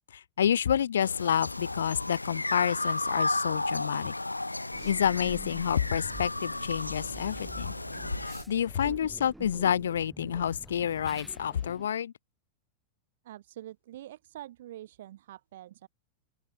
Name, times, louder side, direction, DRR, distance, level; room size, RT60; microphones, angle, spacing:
voice 1, 0.1-4.1 4.8-7.7 8.2-12.1, left 9 dB, 65° left, 1.4 m, -29 dB
sound 1, 1.0-8.4, left 2 dB, 85° left, 1.4 m, -33 dB
sound 2, 4.7-11.9, right 1 dB, 5° right, 4.8 m, -47 dB
voice 2, 13.2-15.9, right 13 dB, 55° right, 2.4 m, -45 dB
open air
figure-of-eight pair, 90°, 0 cm